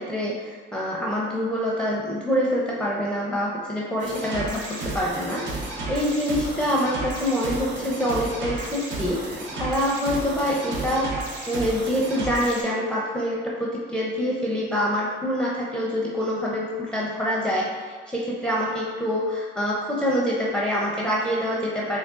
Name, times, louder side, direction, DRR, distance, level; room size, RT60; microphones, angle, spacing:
voice 1, 0.0-22.0, equal, 5° left, -5 dB, 0.5 m, -26 dB
sound 1, 4.0-12.6, right 2 dB, 70° right, 0.8 m, -33 dB
3.6 x 3.3 x 2.4 m, 1.5 s
cardioid pair, 90°, 20 cm